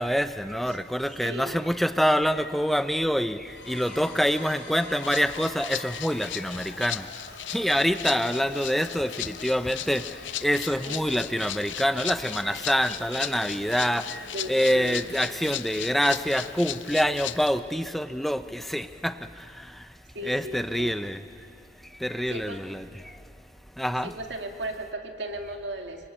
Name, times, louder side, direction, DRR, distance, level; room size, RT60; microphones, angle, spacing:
voice 1, 0.0-3.4 3.7-7.0 7.5-10.0 10.4-19.1 20.2-21.2 22.0-22.8 23.8-24.1, equal, ahead, 10 dB, 0.7 m, -26 dB
voice 2, 1.2-1.6 10.9-11.0 14.3-15.0 20.1-20.9 22.3-22.6 24.0-26.1, right 1 dB, 65° right, 4 dB, 2.2 m, -36 dB
sound 1, 3.5-16.6, left 3 dB, 70° left, 3.5 m, -46 dB
Rattle (instrument), 5.0-17.6, left 13 dB, 90° left, 0.6 m, -37 dB
25.5 x 21.5 x 8.8 m, 2.5 s
head